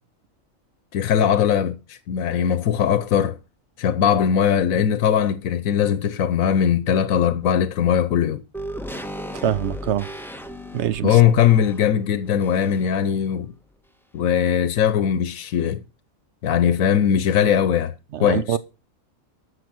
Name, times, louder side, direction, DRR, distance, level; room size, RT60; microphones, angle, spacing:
voice 1, 0.9-3.4 3.8-8.4 11.0-13.5 14.1-15.8 16.4-17.9 18.2-18.6, left 9 dB, 90° left, 1.2 m, -20 dB
sound 1, 8.5-13.0 13.3-13.4, equal, ahead, 1.1 m, -36 dB
voice 2, 9.4-10.1 10.7-11.2 18.1-18.6, right 10 dB, 60° right, 1.0 m, -24 dB
14.0 x 6.6 x 6.1 m
omnidirectional pair, 1.4 m